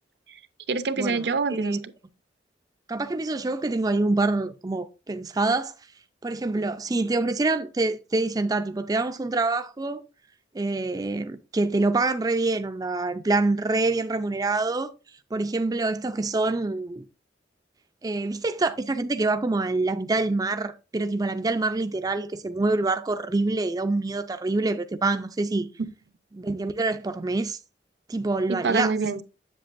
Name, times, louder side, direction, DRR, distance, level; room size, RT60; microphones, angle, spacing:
voice 1, 0.7-1.8 28.5-29.2, right 4 dB, 70° right, 0.6 m, -26 dB
voice 2, 2.9-5.7 6.2-10.0 10.5-14.9 15.3-17.0 18.0-25.7 26.3-27.6 28.1-28.9, right 2 dB, 20° right, 0.4 m, -26 dB
7.6 x 7.6 x 2.5 m
head